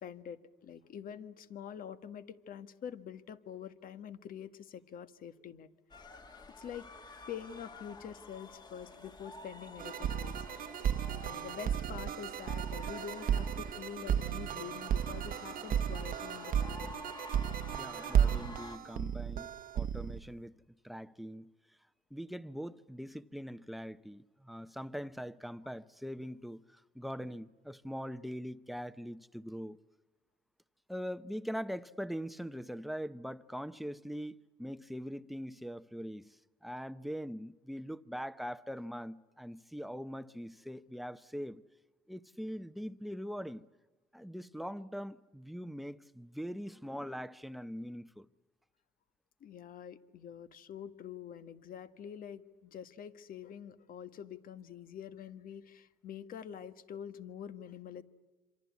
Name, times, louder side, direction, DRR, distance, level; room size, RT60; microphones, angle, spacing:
voice 1, 0.0-5.7 6.5-6.9 7.3-10.5 11.2-17.1 49.4-58.0, left 8 dB, 55° left, 1.6 m, -46 dB
sound 1, 5.9-18.8, left 2 dB, 25° left, 1.9 m, -50 dB
sound 2, 9.8-20.2, right 9 dB, 55° right, 1.0 m, -34 dB
voice 2, 17.7-20.6 20.8-21.5 22.1-29.8 30.9-41.6 42.1-43.7 44.1-48.3, equal, ahead, 0.9 m, -42 dB
27.0 x 26.0 x 8.4 m
cardioid pair, 110°, 17 cm